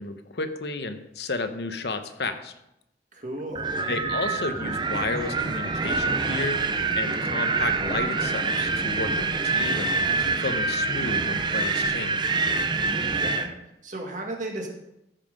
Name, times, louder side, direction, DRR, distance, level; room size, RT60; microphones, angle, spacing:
voice 1, 0.0-2.5 3.9-6.7 7.0-9.9 10.2-12.3, left 3 dB, 65° left, 8 dB, 0.9 m, -32 dB
voice 2, 3.1-3.9 13.0-13.5 13.8-14.7, right 1 dB, 45° right, 1 dB, 1.9 m, -35 dB
Wind, 3.6-13.5, right 4 dB, 25° right, 0.6 m, -26 dB
14.0 x 5.7 x 5.3 m, 0.86 s
head